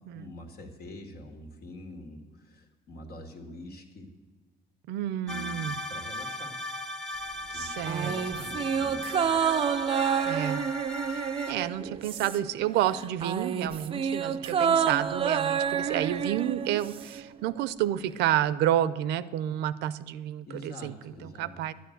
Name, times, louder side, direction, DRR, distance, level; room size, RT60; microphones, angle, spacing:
voice 1, 0.0-4.1 5.3-6.6 7.5-9.4 20.5-21.5, left 1 dB, 70° left, 4 dB, 2.3 m, -45 dB
voice 2, 4.9-5.8 7.5-8.1 10.3-10.6 11.5-21.7, right 12 dB, 85° right, 16 dB, 0.6 m, -30 dB
sound 1, 5.3-11.5, left 1 dB, 5° left, 0.8 m, -37 dB
sound 2, 7.8-12.6 12.9-17.2 17.5-17.6, right 7 dB, 35° right, 0.4 m, -29 dB
11.0 x 9.4 x 7.9 m, 1.4 s
cardioid pair, 110°, 17 cm